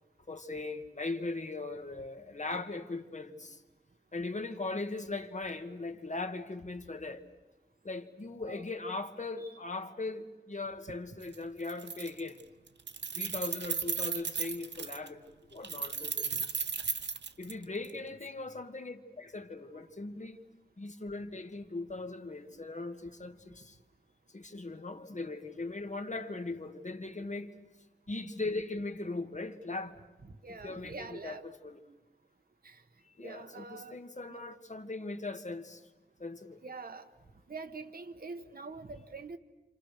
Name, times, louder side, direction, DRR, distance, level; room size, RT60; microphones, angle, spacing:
voice 1, 0.3-3.6 4.1-7.2 7.8-12.4 13.1-16.5 17.4-20.4 20.8-23.8 24.3-27.5 28.1-30.0 30.6-31.8 33.0-35.9 36.2-36.6, left 3 dB, 40° left, 1.7 m, -39 dB
Keys jangling, 11.2-11.3 11.6-12.4 12.7-15.1 15.6-17.9, right 5 dB, 75° right, 0.9 m, -35 dB
voice 2, 30.2-31.4 32.6-32.8 33.2-34.0 34.3-34.4 36.6-37.1 37.5-39.4, right 3 dB, 55° right, 1.3 m, -45 dB
30.0 x 27.0 x 6.6 m
wide cardioid pair, 90°, 18 cm